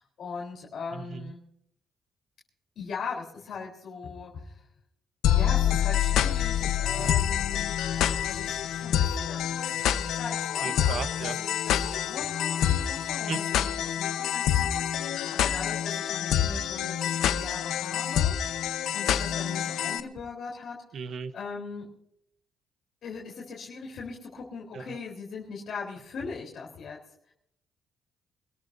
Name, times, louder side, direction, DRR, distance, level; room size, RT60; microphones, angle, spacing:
voice 1, 0.0-1.4 2.8-4.6 5.3-7.8 8.2-21.0 21.3-21.9 23.0-27.0, left 5 dB, 65° left, -2 dB, 3.7 m, -40 dB
voice 2, 0.9-1.3 6.8-7.1 10.6-11.4 13.2-13.4 20.9-21.3 24.7-25.0, right 6 dB, 60° right, 13 dB, 0.9 m, -36 dB
sound 1, 5.2-20.0, left 10 dB, 80° left, 0.9 m, -27 dB
26.0 x 14.0 x 2.7 m, 0.72 s
cardioid pair, 90°, 0 cm